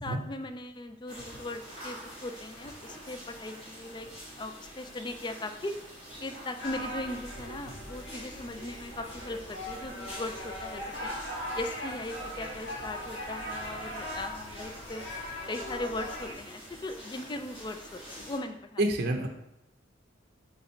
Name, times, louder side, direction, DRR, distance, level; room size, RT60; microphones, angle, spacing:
voice 1, 0.0-4.1 4.4-5.8 6.2-11.1 11.5-15.0 15.5-18.8, left 2 dB, 25° left, 8 dB, 0.4 m, -39 dB
sound 1, 1.1-18.4, equal, 40° left, 2.4 m, -47 dB
sound 2, 6.6-16.3, equal, 70° left, 1.9 m, -40 dB
voice 2, 18.8-19.3, right 1 dB, 55° right, 3 dB, 0.6 m, -27 dB
5.6 x 3.8 x 4.4 m, 0.85 s
head